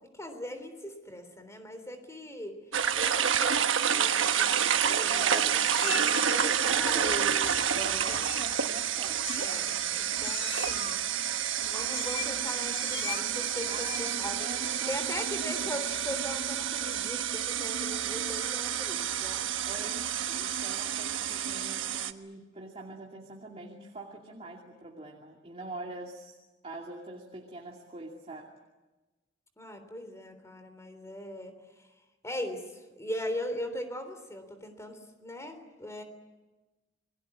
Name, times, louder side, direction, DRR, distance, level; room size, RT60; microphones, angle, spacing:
voice 1, 0.1-2.6 3.0-5.6 6.2-8.3 9.3-11.0 11.3-14.5 14.9-19.6 29.6-31.5 31.8-31.9 32.2-36.0, left 1 dB, 15° left, 8 dB, 3.5 m, -40 dB
sound 1, 2.7-22.1, right 8 dB, 85° right, 1.2 m, -29 dB
Meow, 3.5-3.9 4.2-4.9 5.6-6.4 7.4-7.8 8.1-8.5 9.2-9.9 10.2-11.0 11.9-12.4 12.7-13.2 13.6-14.2 14.6-15.0, left 8 dB, 65° left, 1.6 m, -41 dB
voice 2, 5.1-7.2 7.7-9.5 13.7-15.8 19.6-26.4 26.6-28.5, right 2 dB, 30° right, 0 dB, 2.6 m, -43 dB
28.5 x 22.0 x 8.6 m, 1.2 s
head